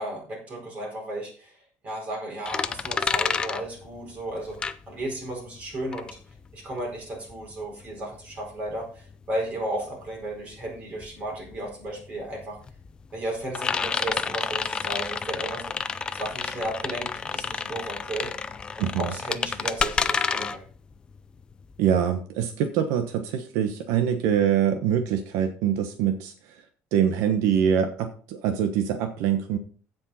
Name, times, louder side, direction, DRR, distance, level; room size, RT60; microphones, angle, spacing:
voice 1, 0.0-1.6 1.8-6.1 6.5-12.6 13.1-18.5 18.8-20.6, right 1 dB, 25° right, -1 dB, 4.7 m, -34 dB
sound 1, 2.5-5.3 5.6-22.0, left 5 dB, 15° left, 0.4 m, -30 dB
voice 2, 18.8-19.1 21.8-26.6 26.9-29.6, right 8 dB, 80° right, 7 dB, 1.2 m, -24 dB
15.5 x 5.4 x 4.2 m, 0.41 s
cardioid pair, 180°, 5 cm